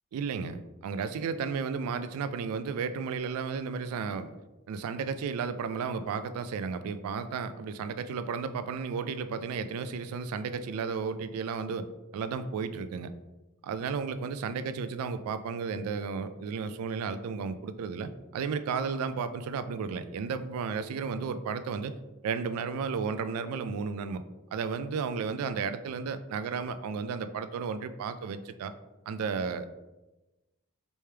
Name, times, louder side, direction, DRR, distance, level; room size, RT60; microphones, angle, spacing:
voice 1, 0.1-4.4 4.7-11.9 12.1-13.1 13.6-21.9 22.2-24.2 24.5-28.7 29.1-29.8, right 5 dB, 90° right, 14 dB, 0.3 m, -33 dB
3.3 x 3.1 x 3.3 m, 1.1 s
head